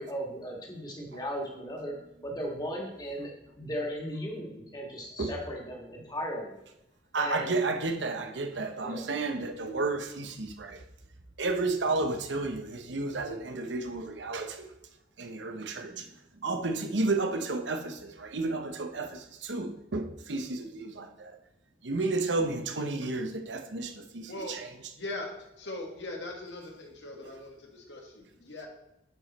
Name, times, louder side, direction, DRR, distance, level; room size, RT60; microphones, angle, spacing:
voice 1, 0.0-1.9 2.2-6.5 7.2-7.6 8.8-9.0, equal, 20° left, 1.8 m, -36 dB
voice 2, 7.1-10.8 11.4-14.7 15.2-16.1 16.4-21.4 21.8-24.7, right 3 dB, 85° right, 1.0 m, -32 dB
voice 3, 25.0-25.3 25.6-28.7, left 2 dB, 80° left, 1.8 m, -40 dB
11.0 x 5.3 x 4.2 m
head